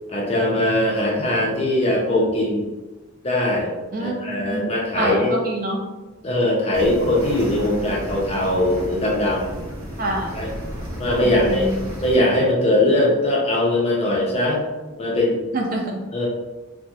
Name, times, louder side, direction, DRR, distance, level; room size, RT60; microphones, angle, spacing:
voice 1, 0.1-2.7 3.2-3.7 4.0-5.4 6.2-9.6 10.3-10.5 11.0-11.7 12.0-14.6 15.0-15.4 16.1-16.3, left 1 dB, 30° left, -3 dB, 0.4 m, -20 dB
voice 2, 3.9-5.9 10.0-10.3 11.2-11.8 15.5-16.0, right 1 dB, 40° right, 0 dB, 0.3 m, -26 dB
sound 1, 6.7-12.2, equal, 75° right, 1.0 m, -33 dB
2.7 x 2.1 x 2.2 m, 1.1 s
head